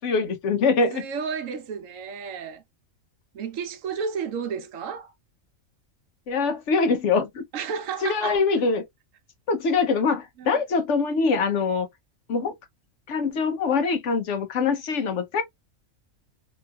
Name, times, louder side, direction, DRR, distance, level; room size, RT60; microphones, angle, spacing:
voice 1, 0.0-1.0 6.3-7.4 8.0-8.8 9.5-11.9 12.3-12.5 13.1-15.4, left 4 dB, 65° left, 1.0 m, -23 dB
voice 2, 0.9-2.6 3.3-5.1 7.5-8.4 10.4-10.5, right 6 dB, 75° right, 1.0 m, -32 dB
3.0 x 3.0 x 2.2 m
omnidirectional pair, 1.4 m